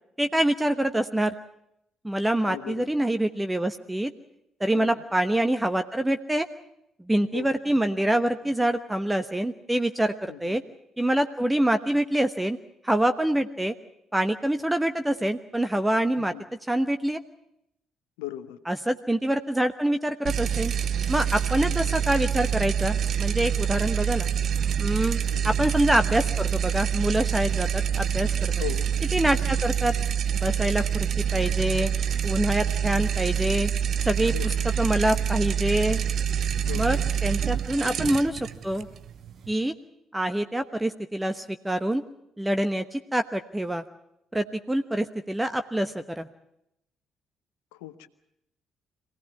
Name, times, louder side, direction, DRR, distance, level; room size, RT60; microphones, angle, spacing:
voice 1, 0.2-1.3 2.0-4.1 4.6-6.5 7.0-10.6 11.0-12.6 12.8-13.7 14.1-16.3 16.7-17.2 18.7-20.7 21.1-24.3 24.8-28.5 29.1-29.9 30.3-31.9 32.2-33.7 34.0-36.0 36.7-38.9 39.5-39.7 40.1-42.0 42.4-43.8 44.3-46.3, right 1 dB, 10° right, 8 dB, 1.1 m, -25 dB
voice 2, 2.4-2.9 4.7-5.0 7.3-7.5 10.3-10.6 16.2-16.4 18.2-18.6 21.6-22.0 25.3-25.6 28.6-28.9 34.2-34.7 36.6-37.1 37.8-38.2 47.7-48.1, left 14 dB, 75° left, 11 dB, 1.0 m, -39 dB
sound 1, 20.3-39.5, right 8 dB, 55° right, 0.9 m, -26 dB
24.0 x 17.0 x 8.3 m, 0.80 s
figure-of-eight pair, 45°, 0 cm